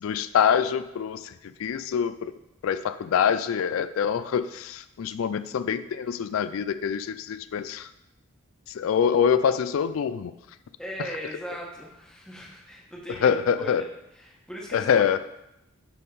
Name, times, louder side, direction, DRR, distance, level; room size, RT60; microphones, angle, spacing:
voice 1, 0.0-1.3 1.6-2.3 2.6-7.9 8.7-10.3 13.2-13.8 14.7-15.2, left 7 dB, 80° left, 13 dB, 0.3 m, -25 dB
voice 2, 10.8-13.9 14.1-15.2, equal, 5° left, -3 dB, 1.1 m, -39 dB
9.8 x 3.7 x 4.1 m, 0.86 s
head